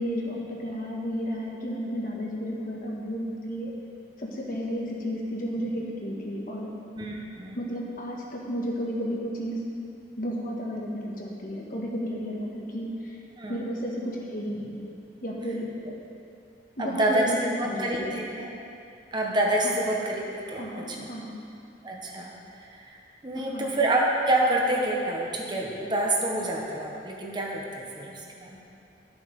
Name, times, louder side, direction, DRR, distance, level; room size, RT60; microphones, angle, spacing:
voice 1, 0.0-3.7 4.2-6.7 7.6-9.6 10.2-13.2 13.5-14.8 15.2-15.7 16.8-18.2 19.6-19.8 20.6-21.4 23.3-23.7, equal, 50° left, -3 dB, 1.6 m, -32 dB
voice 2, 7.0-7.6 13.4-13.6 16.8-18.5 19.1-21.1 21.8-23.0 23.2-28.6, right 1 dB, 25° right, -2 dB, 1.2 m, -28 dB
12.0 x 7.1 x 5.3 m, 2.6 s
head